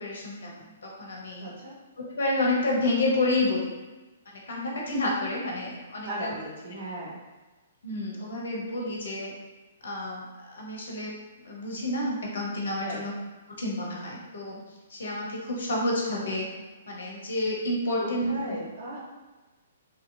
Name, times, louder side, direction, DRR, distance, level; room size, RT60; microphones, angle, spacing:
voice 1, 0.0-1.5 2.1-3.7 4.3-6.3 7.8-9.3 9.8-11.1 11.4-13.1 13.6-14.6 14.9-16.5 16.9-18.3, left 2 dB, 60° left, -2 dB, 0.8 m, -29 dB
voice 2, 1.4-1.7 6.0-7.2 12.8-13.1 17.9-19.0, right 1 dB, 50° right, -5 dB, 0.9 m, -37 dB
2.8 x 2.7 x 2.5 m, 1.2 s
figure-of-eight pair, 120°, 0 cm